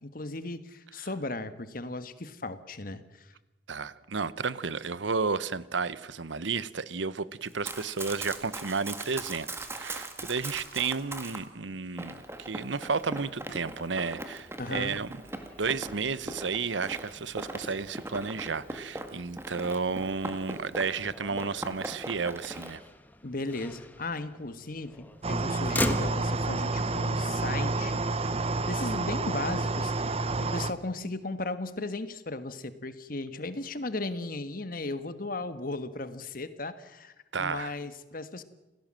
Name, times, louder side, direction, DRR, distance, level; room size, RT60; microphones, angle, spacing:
voice 1, 0.0-3.3 14.6-15.0 23.2-28.3 28.7-30.1 30.4-38.4, left 2 dB, 50° left, 1.4 m, -36 dB
voice 2, 3.7-9.5 9.7-15.1 15.6-22.8 37.3-37.7, right 4 dB, 90° right, 0.9 m, -32 dB
Run, 7.5-11.4 12.0-21.1 21.4-22.7, right 2 dB, 15° right, 1.8 m, -40 dB
Motor vehicle (road), 12.9-28.8, left 1 dB, 10° left, 1.4 m, -42 dB
sound 1, 25.2-30.7, right 3 dB, 35° right, 0.8 m, -29 dB
28.0 x 17.0 x 7.6 m
head